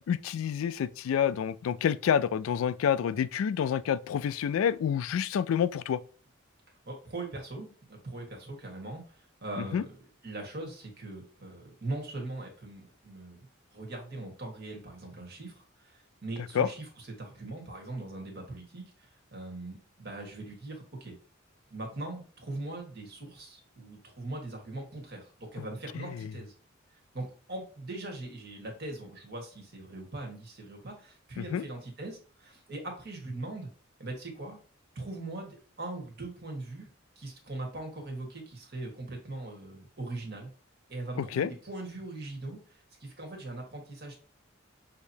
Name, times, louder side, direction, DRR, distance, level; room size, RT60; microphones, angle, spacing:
voice 1, 0.1-6.0 9.6-9.8 16.5-16.7 25.6-25.7 25.9-26.3 31.4-31.6 41.2-41.5, left 8 dB, 90° left, 0.3 m, -28 dB
voice 2, 6.8-9.9 10.2-13.5 13.7-21.2 21.7-26.5 27.1-33.7 34.0-34.6 34.9-36.9 37.1-40.5 40.9-44.3, right 2 dB, 55° right, 1.5 m, -41 dB
6.4 x 2.9 x 2.8 m
head